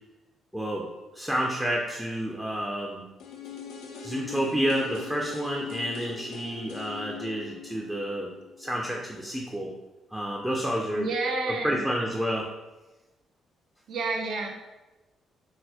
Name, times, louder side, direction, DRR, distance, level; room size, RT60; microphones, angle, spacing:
voice 1, 0.5-0.8 1.1-3.0 4.0-8.3 8.6-9.7 10.1-11.1 11.6-12.5, equal, 5° right, -2 dB, 0.4 m, -29 dB
sound 1, 3.2-9.1 9.4-9.5, left 6 dB, 85° left, 0.4 m, -41 dB
voice 2, 10.9-11.8 13.9-14.6, right 3 dB, 70° right, 2 dB, 0.5 m, -30 dB
3.9 x 2.1 x 2.8 m, 1.1 s
cardioid pair, 90°, 0 cm